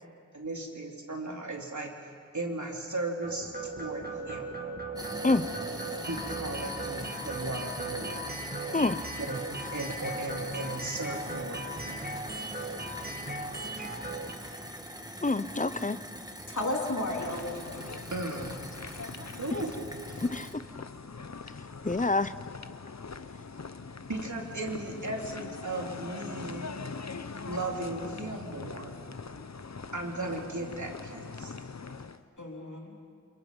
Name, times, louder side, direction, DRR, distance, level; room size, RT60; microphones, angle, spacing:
voice 1, 0.3-1.9 2.3-4.5 6.1-8.3 9.2-9.4 9.7-11.6 11.8-12.0 18.1-18.6 19.4-19.8 24.1-26.7 27.5-29.0 29.9-31.5, right 2 dB, 80° right, 1 dB, 3.0 m, -36 dB
sound 1, 3.2-14.3, right 2 dB, 30° right, 2.0 m, -38 dB
sound 2, 5.0-20.5, equal, 15° right, 2.2 m, -42 dB
voice 2, 15.2-16.0 20.2-20.5 21.8-22.3, left 3 dB, 25° left, 14 dB, 0.7 m, -27 dB
voice 3, 16.5-17.6 32.4-33.0, left 1 dB, 85° left, -1 dB, 3.4 m, -34 dB
sound 3, 17.0-32.2, left 4 dB, 65° left, 0.8 m, -42 dB
29.0 x 27.5 x 5.4 m, 2.3 s
wide cardioid pair, 40°, 29 cm